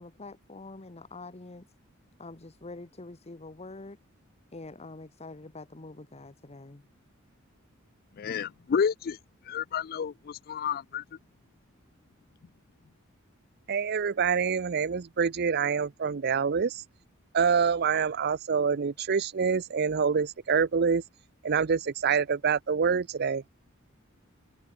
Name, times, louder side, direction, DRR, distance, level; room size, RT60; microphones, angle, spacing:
voice 1, 0.0-1.7 2.2-4.0 4.5-6.9, left 2 dB, 30° left, 1.0 m, -45 dB
voice 2, 8.2-9.2 9.5-11.0, left 7 dB, 45° left, 0.4 m, -30 dB
voice 3, 13.7-16.8 17.3-21.0 21.4-23.4, right 6 dB, 50° right, 0.5 m, -26 dB
head